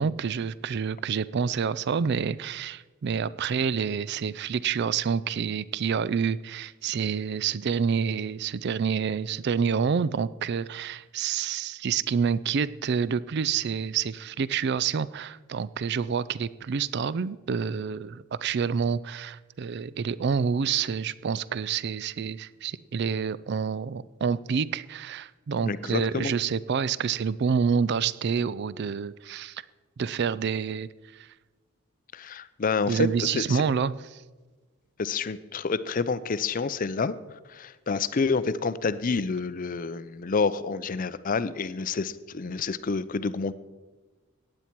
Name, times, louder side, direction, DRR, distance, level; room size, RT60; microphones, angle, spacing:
voice 1, 0.0-29.6 30.0-31.3 32.9-34.2, right 6 dB, 55° right, 19 dB, 0.4 m, -28 dB
voice 2, 25.6-26.3 32.1-33.6 35.0-37.1 37.5-43.5, left 4 dB, 40° left, 15 dB, 0.5 m, -28 dB
15.5 x 9.8 x 4.5 m, 1.3 s
head